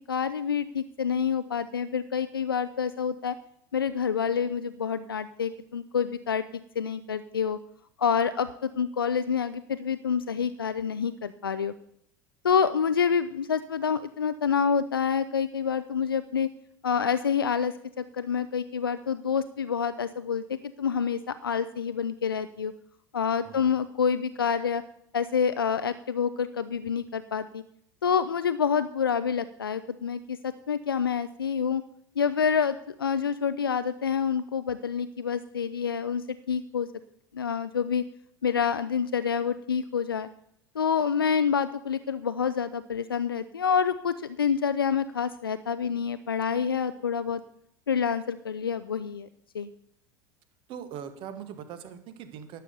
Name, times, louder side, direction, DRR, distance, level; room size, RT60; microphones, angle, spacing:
voice 1, 0.1-3.4 3.7-6.4 6.8-7.6 8.0-11.7 12.4-16.5 16.8-22.7 23.1-24.8 25.1-27.6 28.0-31.8 32.2-36.9 37.3-38.1 38.4-40.3 40.8-47.4 47.9-49.3 49.5-49.7, left 7 dB, 85° left, 13 dB, 0.4 m, -27 dB
voice 2, 23.4-23.8 50.7-52.6, right 8 dB, 45° right, 10 dB, 1.5 m, -41 dB
11.5 x 6.9 x 6.9 m, 0.73 s
figure-of-eight pair, 80°, 12 cm